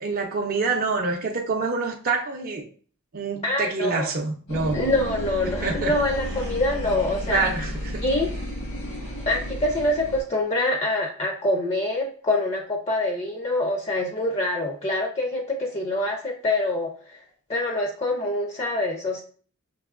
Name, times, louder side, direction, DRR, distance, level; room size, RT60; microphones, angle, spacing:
voice 1, 0.0-2.6 3.1-4.8 5.4-5.9 7.3-8.0, right 4 dB, 40° right, 0 dB, 0.5 m, -26 dB
voice 2, 3.4-4.1 4.7-7.5 8.0-8.3 9.3-17.2 17.5-19.2, left 2 dB, 30° left, 2 dB, 0.5 m, -25 dB
sound 1, 4.5-10.2, equal, 80° left, 1.5 m, -32 dB
5.9 x 2.9 x 2.4 m, 0.43 s
head